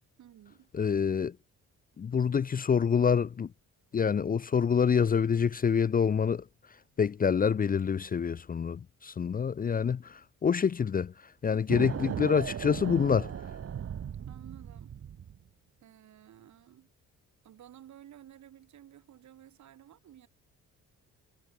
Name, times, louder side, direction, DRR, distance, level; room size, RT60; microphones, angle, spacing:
voice 1, 0.2-0.7 11.5-11.7 14.3-15.0 15.8-16.9 17.4-20.3, right 11 dB, 70° right, 4.8 m, -54 dB
voice 2, 0.7-1.3 2.0-3.5 3.9-6.4 7.0-11.1 11.4-13.3, left 6 dB, 30° left, 0.5 m, -26 dB
sound 1, 11.7-15.4, right 8 dB, 50° right, 2.3 m, -37 dB
cardioid pair, 90°, 30 cm